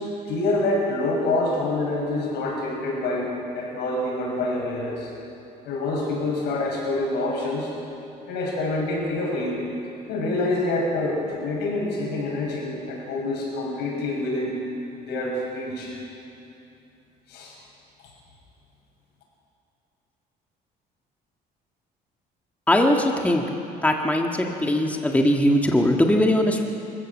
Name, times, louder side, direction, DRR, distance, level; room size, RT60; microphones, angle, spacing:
voice 1, 0.3-5.1 5.7-7.7 8.3-9.6 10.1-14.6 15.0-15.9 17.3-17.5, left 2 dB, 80° left, -2 dB, 6.9 m, -26 dB
voice 2, 22.7-23.4 23.8-26.6, left 1 dB, 10° left, 1 dB, 1.6 m, -20 dB
25.5 x 15.0 x 7.3 m, 2.8 s
cardioid pair, 110°, 17 cm